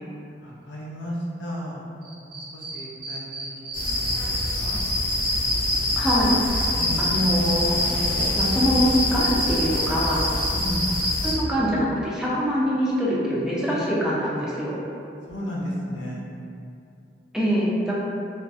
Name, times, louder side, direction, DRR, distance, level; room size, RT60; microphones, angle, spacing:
voice 1, 0.4-1.8 2.2-4.8 6.8-7.1 10.5-10.9 15.3-16.2, equal, 90° left, -4 dB, 0.5 m, -34 dB
Cricket, 2.0-4.8 5.2-8.5 8.9-11.3, right 3 dB, 60° right, 0.5 m, -36 dB
sound 1, 3.7-11.3, left 1 dB, 30° left, 0.7 m, -24 dB
voice 2, 6.0-6.3 7.0-7.8 8.4-10.3 11.2-14.8 17.3-17.9, equal, 5° right, -7 dB, 0.3 m, -24 dB
2.5 x 2.2 x 2.3 m, 2.6 s
head